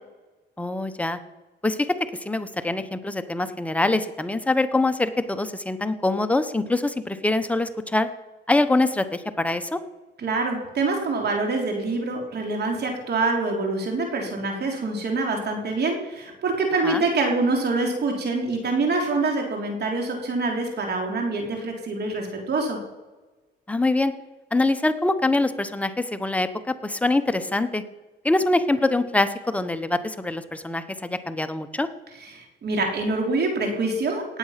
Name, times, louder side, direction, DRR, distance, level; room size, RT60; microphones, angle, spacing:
voice 1, 0.6-1.2 1.6-1.9 2.2-8.1 8.5-9.8 16.8-17.0 23.7-24.1 24.5-27.8 28.2-31.9, left 2 dB, 5° left, 10 dB, 1.0 m, -24 dB
voice 2, 10.2-22.8 32.2-34.4, right 3 dB, 55° right, 2 dB, 3.5 m, -25 dB
18.0 x 7.7 x 5.8 m, 1.2 s
cardioid pair, 90°, 20 cm